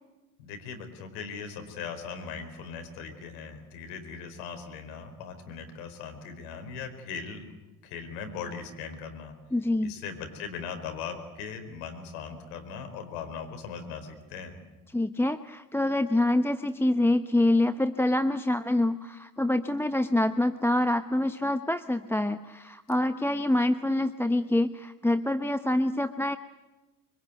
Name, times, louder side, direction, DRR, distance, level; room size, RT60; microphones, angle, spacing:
voice 1, 0.4-7.4 7.8-9.3 9.8-14.6, left 6 dB, 75° left, 7 dB, 4.6 m, -39 dB
voice 2, 9.5-10.0 14.9-26.4, left 1 dB, 5° left, 10 dB, 0.9 m, -26 dB
25.5 x 24.5 x 9.2 m, 1.1 s
hypercardioid pair, 65°, 47 cm